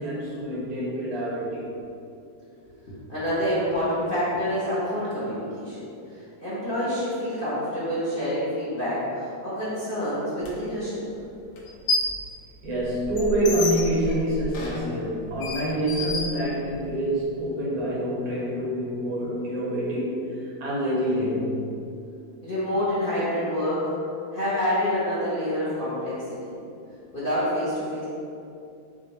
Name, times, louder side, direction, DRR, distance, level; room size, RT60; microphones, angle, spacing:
voice 1, 0.0-1.6 12.6-20.3 20.6-21.5, right 1 dB, 80° right, -5 dB, 1.9 m, -26 dB
voice 2, 2.6-5.9 6.4-11.0 22.4-23.8 24.3-26.5 27.1-28.0, equal, 35° left, -10 dB, 0.9 m, -27 dB
sound 1, 10.4-10.5 11.6-12.2 12.6-17.0, left 2 dB, 65° left, 1.2 m, -30 dB
6.8 x 2.6 x 3.0 m, 2.6 s
omnidirectional pair, 2.2 m